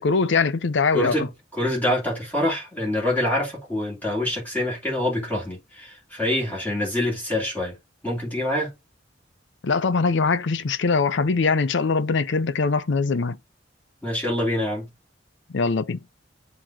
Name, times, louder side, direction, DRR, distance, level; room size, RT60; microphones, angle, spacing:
voice 1, 0.0-1.3 9.6-13.4 15.5-16.0, left 4 dB, 70° left, 0.5 m, -22 dB
voice 2, 0.9-7.8 8.0-8.7 14.0-14.9, left 1 dB, 10° left, 2.7 m, -26 dB
7.5 x 2.9 x 4.8 m
head